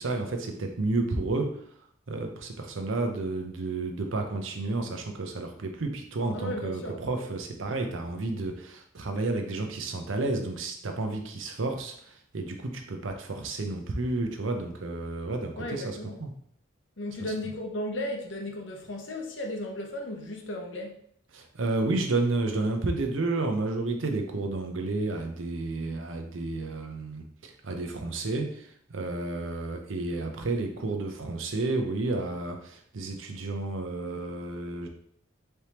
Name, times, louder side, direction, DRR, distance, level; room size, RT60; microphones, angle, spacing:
voice 1, 0.0-1.5 2.1-16.3 21.3-34.9, right 2 dB, 75° right, 0.6 m, -31 dB
voice 2, 6.3-7.0 15.6-16.2 17.0-21.0, left 1 dB, 65° left, 0.7 m, -35 dB
4.3 x 3.4 x 2.9 m
head